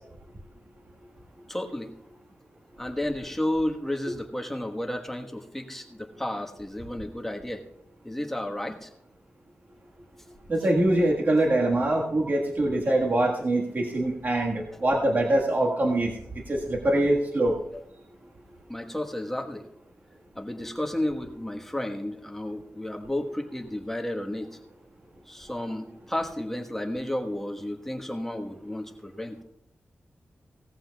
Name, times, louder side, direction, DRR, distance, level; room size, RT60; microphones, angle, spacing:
voice 1, 1.5-1.9 2.8-7.6 8.0-8.9 14.7-14.8 17.7-17.8 18.7-19.7 20.3-24.5 25.3-29.4, left 1 dB, 5° left, 3 dB, 1.3 m, -32 dB
voice 2, 10.5-17.5, right 1 dB, 45° right, -1 dB, 1.6 m, -24 dB
18.0 x 14.5 x 2.3 m, 0.78 s
wide cardioid pair, 90°, 4 cm